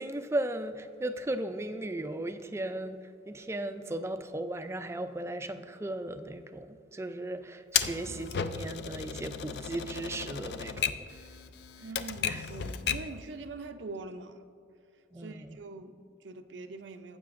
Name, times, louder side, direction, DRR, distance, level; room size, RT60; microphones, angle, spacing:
voice 1, 0.0-11.2 11.8-11.9 12.3-12.5 15.1-15.6, right 1 dB, 15° right, 9 dB, 0.3 m, -36 dB
Typewriter, 7.7-13.2, left 8 dB, 60° left, 0.4 m, -34 dB
voice 2, 11.8-14.4 15.2-17.2, right 3 dB, 85° right, 8 dB, 0.6 m, -43 dB
14.5 x 7.6 x 2.5 m, 2.4 s
head